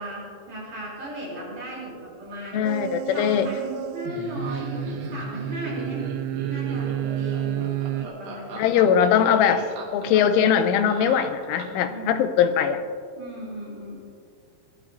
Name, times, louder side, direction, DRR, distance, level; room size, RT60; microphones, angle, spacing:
voice 1, 0.0-2.7 3.1-6.1 6.5-8.7 11.8-12.3 13.2-14.0, right 1 dB, 40° right, -5 dB, 4.4 m, -36 dB
voice 2, 2.5-3.5 8.6-9.7 9.9-12.8, left 8 dB, 90° left, 10 dB, 3.2 m, -21 dB
sound 1, 2.6-4.1 4.4-8.1, right 12 dB, 85° right, 2.6 m, -30 dB
Laughter, 4.0-11.9, right 2 dB, 55° right, 1.9 m, -37 dB
21.5 x 12.5 x 2.8 m, 2.2 s
omnidirectional pair, 5.4 m